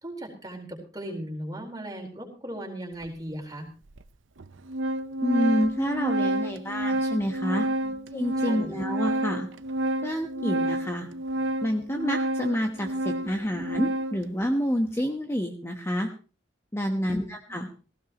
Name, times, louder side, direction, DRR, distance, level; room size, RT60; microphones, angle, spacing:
voice 1, 0.0-3.7 7.8-8.0 8.4-8.7 16.9-17.6, right 1 dB, 20° right, 1 dB, 4.2 m, -38 dB
Organ, 3.0-3.1 4.0-4.1 4.4-14.3, right 1 dB, 85° right, 0.8 m, -29 dB
voice 2, 5.2-7.7 8.1-9.5 10.0-11.1 11.6-16.1 16.7-17.7, equal, 15° left, 3 dB, 1.1 m, -28 dB
18.0 x 16.0 x 3.0 m, 0.35 s
head